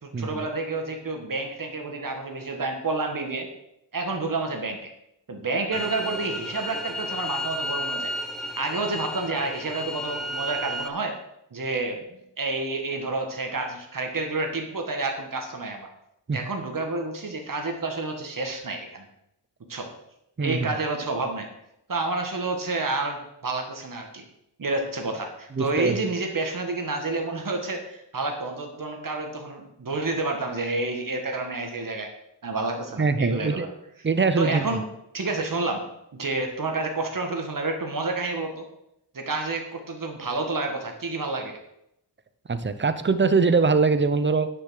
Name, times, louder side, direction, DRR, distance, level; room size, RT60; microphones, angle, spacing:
voice 1, 0.0-3.5 3.9-4.9 5.3-8.1 8.6-11.2 11.5-15.9 16.3-19.1 19.7-19.9 20.4-21.5 21.9-24.2 24.6-32.1 32.4-33.7 34.4-34.8 35.1-38.6 39.1-41.5, right 3 dB, 50° right, 3 dB, 2.0 m, -29 dB
sound 1, 5.7-10.9, left 1 dB, ahead, 1.1 m, -32 dB
voice 2, 20.4-20.7 25.5-26.0 33.0-33.7 34.0-34.8 42.5-44.5, right 4 dB, 25° right, 11 dB, 0.8 m, -22 dB
9.8 x 7.0 x 6.6 m, 0.81 s
wide cardioid pair, 115°, 43 cm